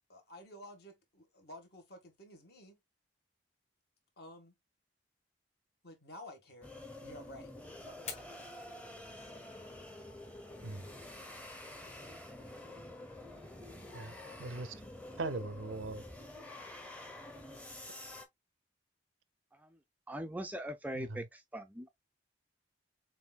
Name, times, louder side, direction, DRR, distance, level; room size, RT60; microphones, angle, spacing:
voice 1, 0.0-2.8 4.2-4.5 5.8-6.7 7.0-9.4, left 1 dB, 55° left, 1.7 m, -53 dB
sound 1, 6.6-18.2, left 1 dB, 5° left, 0.8 m, -48 dB
Fire, 7.9-15.9, left 6 dB, 35° left, 1.2 m, -55 dB
voice 2, 14.4-14.8 15.2-16.0 20.9-21.2, right 3 dB, 85° right, 0.6 m, -40 dB
voice 3, 20.1-21.9, equal, 10° right, 0.4 m, -41 dB
6.8 x 2.6 x 2.2 m
head